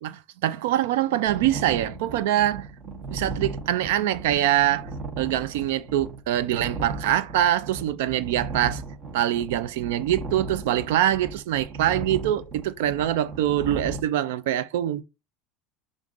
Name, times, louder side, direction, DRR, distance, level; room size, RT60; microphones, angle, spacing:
voice 1, 0.0-4.9 5.2-8.8 9.1-15.0, right 12 dB, 80° right, 0.5 m, -24 dB
sound 1, 1.3-14.0, right 3 dB, 40° right, 1.0 m, -36 dB
5.3 x 2.5 x 3.7 m
supercardioid pair, 135°, 0 cm